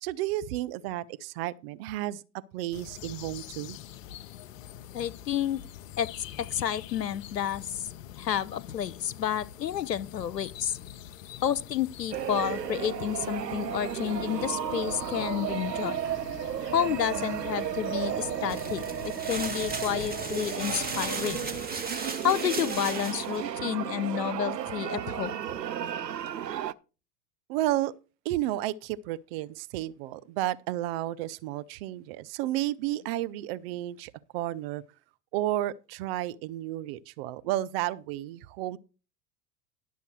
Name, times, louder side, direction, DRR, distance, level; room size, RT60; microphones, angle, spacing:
voice 1, 0.0-2.2 2.5-3.8 27.5-27.9 28.2-34.8 35.3-38.8, right 14 dB, 40° right, 0.6 m, -32 dB
sound 1, 2.7-21.7, left 11 dB, 55° left, 0.8 m, -45 dB
voice 2, 4.9-5.6 6.0-7.9 8.2-10.8 11.4-16.0 16.7-21.4 22.2-25.3, left 9 dB, 85° left, 0.7 m, -30 dB
sound 2, 12.1-26.7, right 10 dB, 85° right, 0.6 m, -34 dB
sound 3, 18.5-23.4, right 3 dB, 20° right, 1.7 m, -36 dB
11.0 x 6.9 x 4.6 m
figure-of-eight pair, 90°, 48 cm